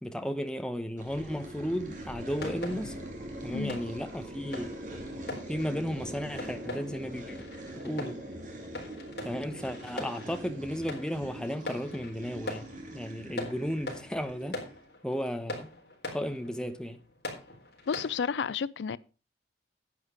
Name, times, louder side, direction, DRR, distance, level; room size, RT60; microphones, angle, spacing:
voice 1, 0.0-3.0 3.4-4.8 5.5-7.4 7.8-8.2 9.2-14.6 15.0-15.7 16.1-17.0, equal, 5° left, 0.9 m, -34 dB
sound 1, 1.0-14.8, right 1 dB, 45° right, 2.8 m, -43 dB
sound 2, 2.4-18.4, left 2 dB, 60° left, 4.1 m, -43 dB
voice 2, 17.9-19.0, left 6 dB, 80° left, 0.4 m, -31 dB
10.5 x 8.1 x 4.8 m
head